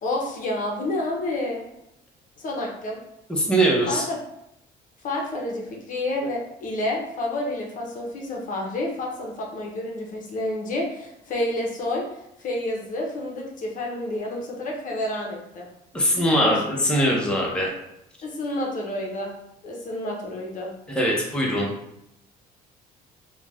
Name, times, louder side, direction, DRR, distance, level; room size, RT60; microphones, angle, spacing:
voice 1, 0.0-1.7 2.4-3.0 3.9-4.2 5.0-12.0 12.4-15.7 16.4-16.6 18.2-19.3 19.6-20.7, left 1 dB, 50° left, -1 dB, 0.6 m, -29 dB
voice 2, 3.3-4.1 15.9-17.7 20.9-21.7, equal, 5° left, -2 dB, 0.6 m, -22 dB
2.4 x 2.2 x 3.3 m, 0.81 s
cardioid pair, 110°, 17 cm